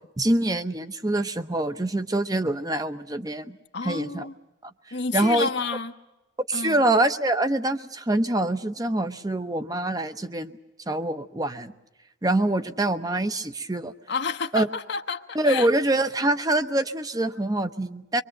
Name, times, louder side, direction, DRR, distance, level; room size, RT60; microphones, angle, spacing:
voice 1, 0.2-3.6 3.8-4.3 4.6-4.7 5.1-5.5 6.5-10.6 10.9-11.7 12.2-13.9 14.5-14.7 15.3-18.2, right 1 dB, 20° right, 10 dB, 0.8 m, -25 dB
voice 2, 3.7-4.3 4.9-5.9 6.5-6.8 14.1-15.7, left 4 dB, 60° left, 6 dB, 1.0 m, -30 dB
24.0 x 23.5 x 7.7 m, 0.95 s
head